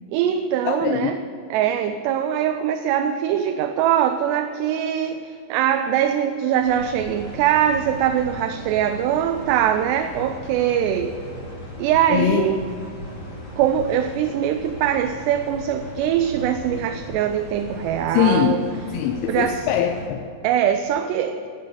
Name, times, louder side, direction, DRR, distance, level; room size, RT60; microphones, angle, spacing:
voice 1, 0.1-1.2 1.5-11.2 11.8-12.6 13.6-18.6 19.3-19.7 20.4-21.5, right 10 dB, 85° right, 8 dB, 2.7 m, -22 dB
voice 2, 0.7-1.1 12.1-12.5 18.1-20.2, left 9 dB, 80° left, 7 dB, 2.3 m, -22 dB
sound 1, 6.6-20.1, equal, 30° left, 2.6 m, -37 dB
10.5 x 8.3 x 9.1 m, 2.6 s
omnidirectional pair, 4.8 m